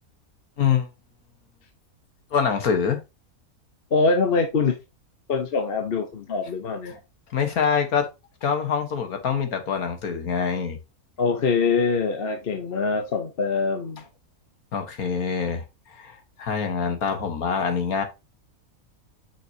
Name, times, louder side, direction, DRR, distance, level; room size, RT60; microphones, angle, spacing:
voice 1, 0.6-0.9 2.3-3.0 6.9-7.0 7.3-8.1 8.4-10.8 14.7-18.0, left 6 dB, 90° left, 1.8 m, -25 dB
voice 2, 3.9-4.8 5.3-6.9 11.2-14.0, left 4 dB, 45° left, 1.0 m, -23 dB
6.1 x 6.0 x 2.8 m
omnidirectional pair, 1.5 m